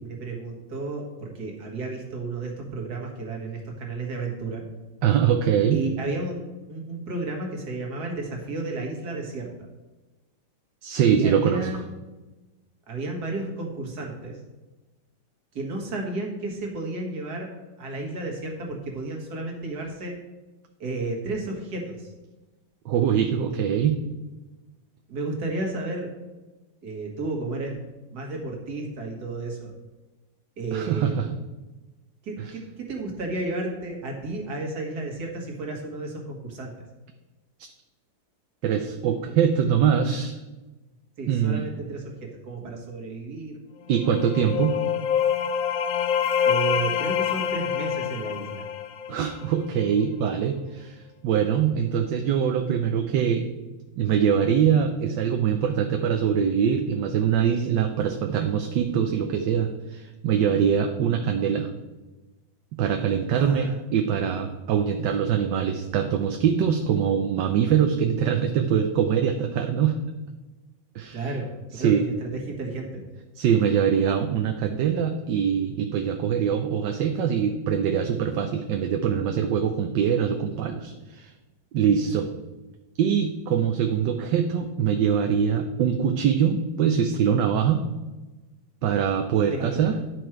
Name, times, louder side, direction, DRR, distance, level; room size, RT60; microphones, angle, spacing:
voice 1, 0.0-4.6 5.7-6.4 6.7-9.5 11.1-12.0 12.9-14.4 15.5-17.5 17.8-20.1 20.8-22.1 25.1-26.1 26.8-27.8 28.1-29.7 30.6-31.2 32.2-36.7 41.2-43.6 46.5-48.6 63.3-63.8 71.1-73.0 89.5-89.8, right 2 dB, 55° right, 1 dB, 2.2 m, -32 dB
voice 2, 5.0-5.8 10.8-11.8 22.8-24.0 30.7-31.3 32.4-32.5 37.6-37.7 38.6-40.4 41.3-41.7 43.9-44.8 49.1-53.5 54.0-61.7 62.8-70.0 70.9-71.3 71.7-72.1 73.4-81.3 81.7-82.3 83.0-87.9 88.8-90.0, right 8 dB, 75° right, 5 dB, 1.3 m, -23 dB
sound 1, 43.9-49.6, left 8 dB, 70° left, 0.8 m, -26 dB
10.0 x 6.3 x 4.5 m, 1.1 s
omnidirectional pair, 2.1 m